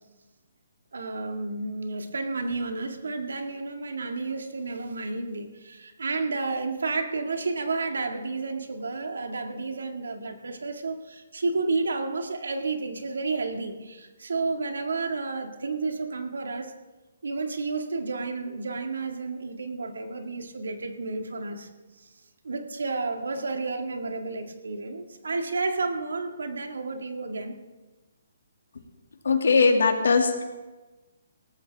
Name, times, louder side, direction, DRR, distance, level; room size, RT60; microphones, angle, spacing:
voice 1, 0.9-16.7 17.2-21.7 22.0-22.1 22.4-27.5, right 3 dB, 90° right, 5 dB, 1.9 m, -31 dB
voice 2, 29.2-30.5, left 4 dB, 80° left, 4 dB, 2.2 m, -20 dB
18.0 x 14.0 x 3.5 m, 1.2 s
hypercardioid pair, 160°, 0 cm